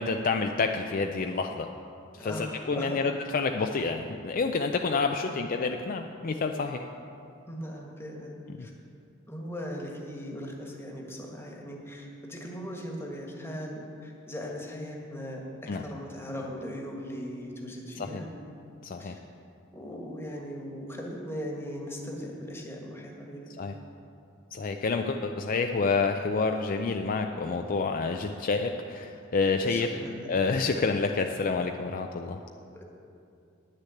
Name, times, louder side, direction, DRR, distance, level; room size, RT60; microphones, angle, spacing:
voice 1, 0.0-1.7 2.1-6.9 8.6-8.7 15.7-15.9 18.0-18.2 18.8-19.2 23.6-23.8 24.5-29.9 30.3-32.4, left 4 dB, 45° left, 5 dB, 0.4 m, -28 dB
voice 2, 2.2-3.1 5.2-5.4 7.5-8.3 8.6-8.7 9.3-18.3 19.0-19.2 19.7-23.5 29.6-30.3 32.7-32.8, equal, 10° left, 0 dB, 1.4 m, -39 dB
9.9 x 6.5 x 8.4 m, 2.5 s
head